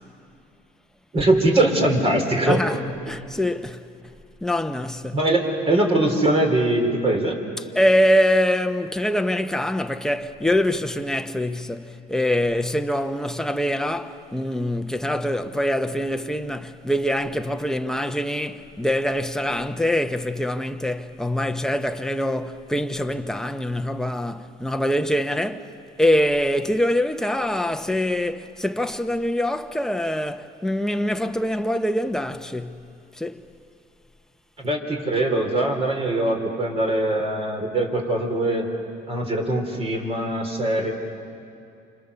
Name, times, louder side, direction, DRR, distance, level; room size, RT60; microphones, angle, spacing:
voice 1, 1.1-2.6 5.1-7.4 34.6-38.7 39.1-40.9, right 1 dB, 35° right, 4.1 m, -22 dB
voice 2, 2.5-3.9 4.4-5.2 7.7-25.7 26.0-32.8 33.1-33.4, left 1 dB, 5° left, 1.1 m, -24 dB
29.0 x 27.0 x 7.1 m
cardioid pair, 115°, 18 cm